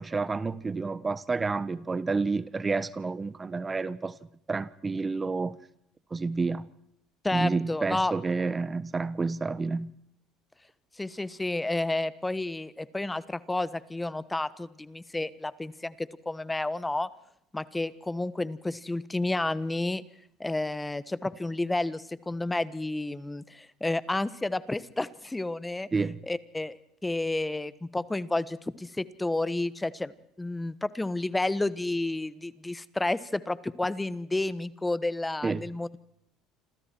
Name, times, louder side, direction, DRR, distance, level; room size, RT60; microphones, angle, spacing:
voice 1, 0.0-4.1 4.5-5.6 6.1-6.7 7.3-9.9 25.9-26.2 35.4-35.6, right 4 dB, 25° right, 1.1 m, -29 dB
voice 2, 7.2-8.1 11.0-17.1 17.5-20.0 20.4-25.9 26.3-26.8 27.0-30.1 30.4-36.0, left 2 dB, 10° left, 1.3 m, -31 dB
28.0 x 27.0 x 4.6 m
hypercardioid pair, 75°, 0 cm